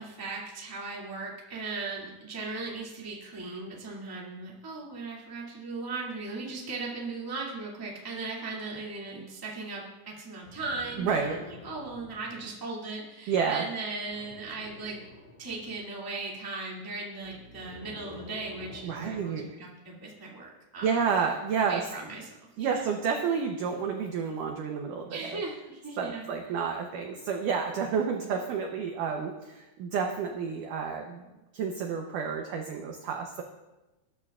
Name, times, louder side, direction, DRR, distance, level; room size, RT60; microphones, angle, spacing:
voice 1, 0.0-15.0 15.4-21.0 21.6-22.3 22.6-22.9 25.1-26.3, right 3 dB, 10° right, -4 dB, 1.1 m, -38 dB
sound 1, 10.4-12.4 14.1-15.8 17.1-19.4 20.8-20.9, left 3 dB, 75° left, 3.8 m, -48 dB
voice 2, 11.0-11.4 13.3-13.7 18.8-19.5 20.8-21.8 22.6-25.4 26.0-31.3 31.5-33.4, right 6 dB, 80° right, 3 dB, 1.9 m, -30 dB
20.0 x 11.0 x 2.4 m, 1.1 s
omnidirectional pair, 4.8 m